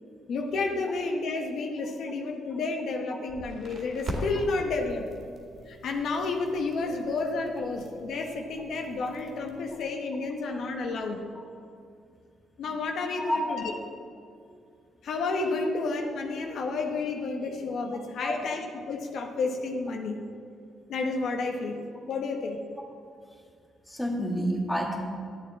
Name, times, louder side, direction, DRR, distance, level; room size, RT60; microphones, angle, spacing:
voice 1, 0.3-5.1 5.7-11.2 12.6-13.6 15.0-20.2 20.9-21.8 22.1-22.6, left 3 dB, 70° left, 3 dB, 1.0 m, -31 dB
Crackle, 3.3-9.8, right 1 dB, 55° right, 2.2 m, -42 dB
voice 2, 23.9-25.1, equal, 5° left, -1 dB, 1.6 m, -29 dB
11.0 x 8.5 x 4.1 m, 2.4 s
cardioid pair, 90°, 0 cm